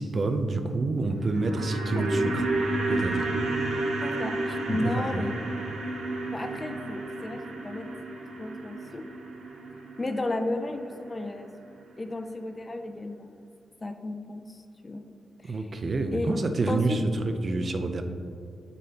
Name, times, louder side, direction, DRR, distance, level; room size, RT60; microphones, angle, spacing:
voice 1, 0.0-3.3 4.7-5.2 15.4-18.0, right 3 dB, 35° right, 7 dB, 0.5 m, -28 dB
sound 1, 1.1-11.3 11.6-11.7, right 2 dB, 85° right, 0.9 m, -32 dB
voice 2, 4.0-5.3 6.3-7.9 8.4-9.0 10.0-11.5 12.0-13.3 13.8-15.0 15.4-15.7 16.1-16.3 16.7-17.0, left 2 dB, 20° left, 7 dB, 0.4 m, -33 dB
9.3 x 5.1 x 2.8 m, 2.5 s
wide cardioid pair, 155°, 0 cm